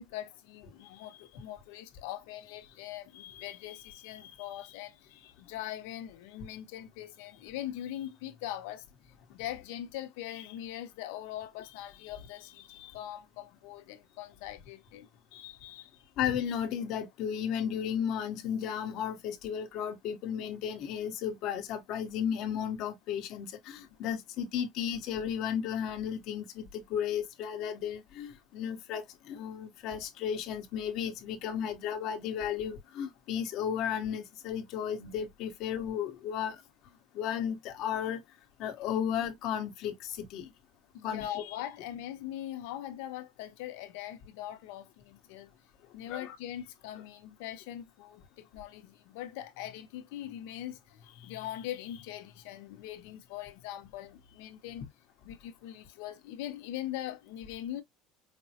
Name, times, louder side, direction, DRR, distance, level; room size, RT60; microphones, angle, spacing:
voice 1, 0.0-16.1 23.8-23.9 40.9-45.5 45.9-54.9 55.2-57.8, left 12 dB, 85° left, 0.8 m, -42 dB
voice 2, 16.2-36.6 37.1-38.2 38.6-40.5 41.0-41.2 46.1-46.4, left 8 dB, 60° left, 1.1 m, -34 dB
5.1 x 2.1 x 2.8 m
supercardioid pair, 125°, 0 cm